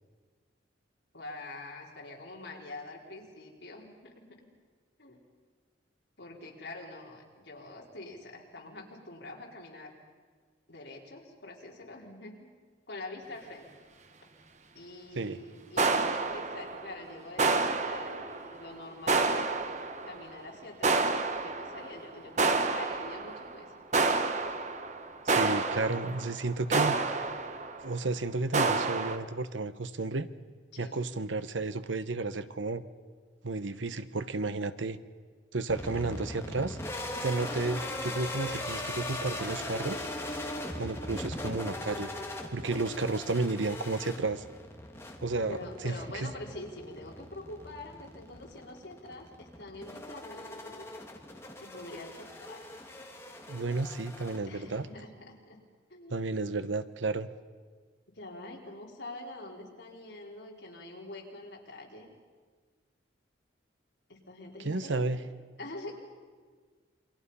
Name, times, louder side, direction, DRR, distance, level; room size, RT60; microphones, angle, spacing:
voice 1, 1.1-4.3 5.0-5.2 6.2-9.9 10.7-12.5 12.9-13.7 14.7-19.5 20.0-21.1 21.4-23.7 30.7-30.9 45.5-50.9 51.6-52.6 54.5-55.6 55.9-56.4 58.1-62.1 64.1-65.2 65.6-65.9, left 2 dB, 70° left, -1 dB, 4.1 m, -45 dB
sound 1, 15.8-17.0 17.4-18.7 19.1-20.2 20.8-22.0 22.4-23.5 23.9-27.9 28.5-29.2, right 3 dB, 40° right, 1.1 m, -29 dB
voice 2, 25.2-27.0 27.8-30.3 30.8-32.8 33.4-35.0 35.5-36.8 37.2-40.0 40.8-42.1 42.5-44.4 45.2-46.3 53.5-54.9 56.1-57.3 64.6-65.2, right 3 dB, 85° right, 12 dB, 1.0 m, -32 dB
sound 2, 35.7-54.9, left 1 dB, 15° left, 2.2 m, -40 dB
28.0 x 24.0 x 5.6 m, 1.5 s
head